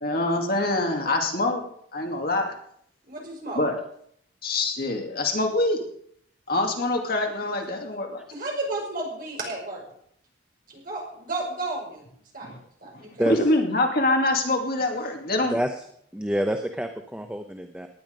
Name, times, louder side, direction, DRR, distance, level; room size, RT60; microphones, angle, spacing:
voice 1, 0.0-1.6 1.9-2.5 3.5-3.8 4.4-5.8 6.5-8.2 12.4-12.6 13.3-15.6, left 2 dB, 50° left, 2 dB, 2.5 m, -25 dB
voice 2, 3.1-3.6 8.3-9.8 10.7-12.0 12.3-12.5 12.8-13.1, right 2 dB, 45° right, -1 dB, 5.5 m, -32 dB
voice 3, 13.2-13.5 15.5-15.7 16.1-17.9, equal, 5° right, 5 dB, 0.8 m, -27 dB
18.5 x 10.5 x 5.3 m, 0.67 s
head